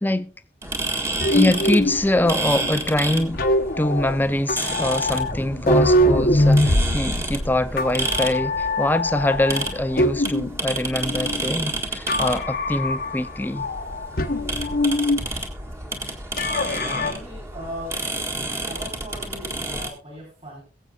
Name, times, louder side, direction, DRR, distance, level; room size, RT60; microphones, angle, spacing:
sound 1, 0.6-19.9, right 2 dB, 15° right, 1.7 m, -30 dB
sound 2, 1.2-10.6 10.9-11.7 12.1-13.3 13.6-15.2 16.4-17.1, left 1 dB, 55° left, 1.0 m, -23 dB
voice 1, 1.3-3.4 3.8-13.6, left 1 dB, 10° left, 0.5 m, -23 dB
voice 2, 16.4-18.0 18.3-20.6, equal, 35° right, 4.4 m, -38 dB
22.5 x 7.8 x 2.4 m
head